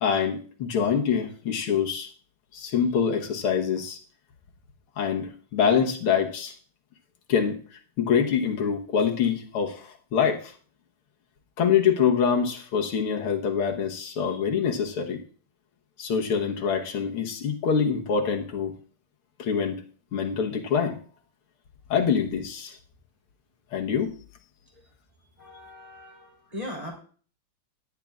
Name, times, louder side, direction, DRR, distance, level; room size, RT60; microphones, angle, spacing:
voice 1, 0.0-2.1 2.5-4.0 5.0-6.5 7.3-7.6 8.0-10.5 11.6-15.2 16.0-18.7 19.4-19.8 20.1-21.0 21.9-22.8 23.7-24.1, left 7 dB, 80° left, 2 dB, 2.1 m, -25 dB
voice 2, 25.2-26.9, left 1 dB, 15° right, -2 dB, 3.6 m, -39 dB
17.5 x 11.0 x 2.5 m, 0.42 s
omnidirectional pair, 2.4 m